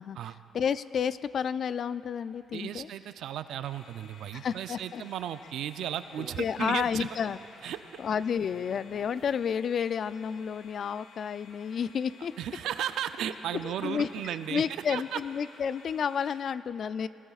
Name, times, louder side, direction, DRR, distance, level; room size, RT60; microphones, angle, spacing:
voice 1, 0.5-2.9 4.3-5.0 6.4-7.4 8.0-12.3 13.6-17.1, left 7 dB, 55° left, 15 dB, 0.3 m, -31 dB
voice 2, 2.5-7.1 7.6-8.0 12.4-14.6 14.9-15.2, right 10 dB, 80° right, 11 dB, 0.4 m, -35 dB
sound 1, 3.6-16.4, left 4 dB, 80° left, 1.7 m, -55 dB
Human voice, 6.1-9.7 10.1-10.2 10.7-10.8, right 5 dB, 40° right, 0.7 m, -52 dB
21.5 x 19.5 x 2.4 m, 2.9 s
cardioid pair, 90°, 0 cm